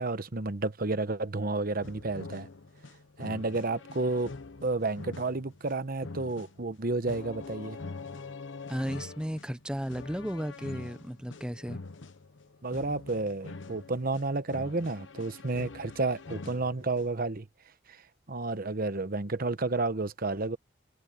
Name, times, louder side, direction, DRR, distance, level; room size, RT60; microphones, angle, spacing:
voice 1, 0.0-2.5 3.2-4.3 4.6-7.8 12.6-17.5 17.9-18.0 18.3-20.6, right 3 dB, 50° right, 1.0 m, -31 dB
sound 1, 1.8-17.3, left 3 dB, 75° left, 1.0 m, -45 dB
voice 2, 8.7-11.8, equal, 5° right, 0.8 m, -34 dB
head